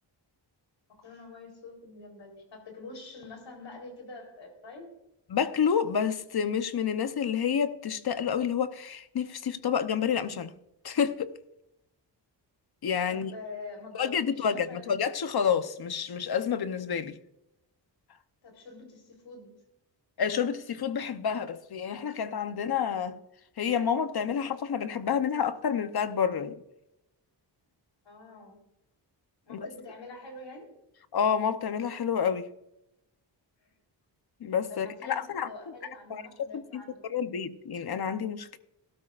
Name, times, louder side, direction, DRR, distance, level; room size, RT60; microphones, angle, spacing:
voice 1, 1.0-4.9 13.1-15.1 18.4-19.6 28.0-28.6 29.4-30.7 33.6-33.7 34.7-37.0, left 3 dB, 90° left, 4.0 m, -46 dB
voice 2, 5.3-10.5 10.8-11.3 12.8-13.3 14.0-17.2 20.2-23.2 23.6-26.6 29.5-29.7 31.1-32.5 34.4-35.5 36.1-36.2 36.5-38.6, left 7 dB, 60° left, 0.9 m, -29 dB
18.0 x 12.5 x 2.5 m
wide cardioid pair, 145°, 43 cm